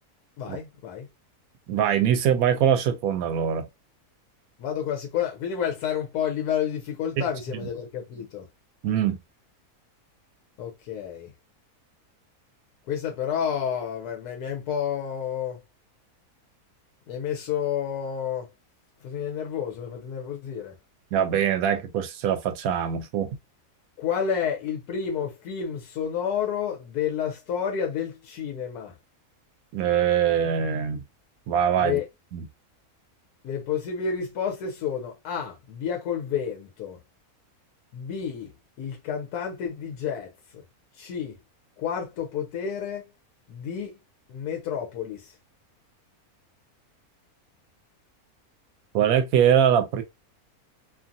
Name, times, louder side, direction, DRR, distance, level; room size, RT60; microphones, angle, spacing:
voice 1, 0.4-1.1 4.6-8.5 10.6-11.3 12.9-15.6 17.1-18.5 19.0-20.8 24.0-29.0 31.8-32.1 33.4-37.0 37.9-38.5 38.8-40.6 40.9-41.4 41.8-43.1 43.5-43.9 44.3-45.3, left 8 dB, 90° left, 1.2 m, -30 dB
voice 2, 1.7-3.7 8.8-9.2 21.1-23.3 29.7-31.0 31.5-32.0 32.3-32.4 48.9-50.0, right 9 dB, 75° right, 1.0 m, -23 dB
2.8 x 2.4 x 2.6 m
omnidirectional pair, 1.6 m